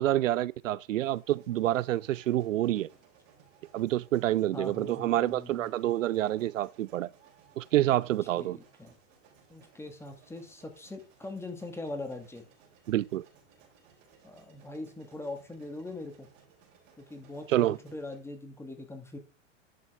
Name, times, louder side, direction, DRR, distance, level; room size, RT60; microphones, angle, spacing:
voice 1, 0.0-2.9 3.7-7.1 7.6-8.6 12.9-13.2 17.5-17.8, right 14 dB, 80° right, 0.5 m, -27 dB
sound 1, 1.0-18.2, right 7 dB, 55° right, 4.5 m, -61 dB
voice 2, 4.5-5.7 8.4-8.9 9.5-12.4 14.2-16.3 17.0-19.2, left 2 dB, 5° left, 2.2 m, -41 dB
11.0 x 6.0 x 3.7 m
hypercardioid pair, 110°, 38 cm